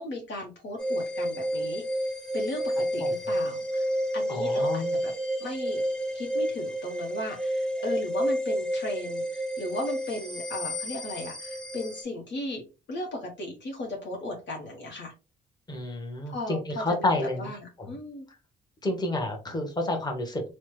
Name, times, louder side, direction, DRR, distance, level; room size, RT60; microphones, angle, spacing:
voice 1, 0.0-1.8 2.3-5.1 5.4-5.8 6.1-12.6 12.9-15.1 16.3-18.3, left 1 dB, 65° left, 0 dB, 0.9 m, -36 dB
sound 1, 0.8-12.0, equal, 5° left, 0.6 m, -30 dB
voice 2, 4.3-4.9 15.7-17.5 18.8-20.5, left 2 dB, 20° left, 3 dB, 1.0 m, -29 dB
3.1 x 2.0 x 3.1 m, 0.31 s
cardioid pair, 90°, 20 cm